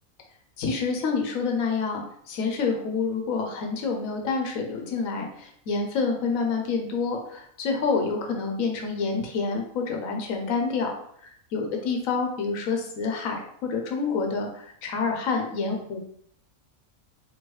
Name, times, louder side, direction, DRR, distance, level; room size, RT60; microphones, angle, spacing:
voice 1, 0.6-10.9 11.2-16.0, left 4 dB, 80° left, 2 dB, 1.2 m, -28 dB
4.4 x 3.1 x 3.1 m, 0.64 s
omnidirectional pair, 1.4 m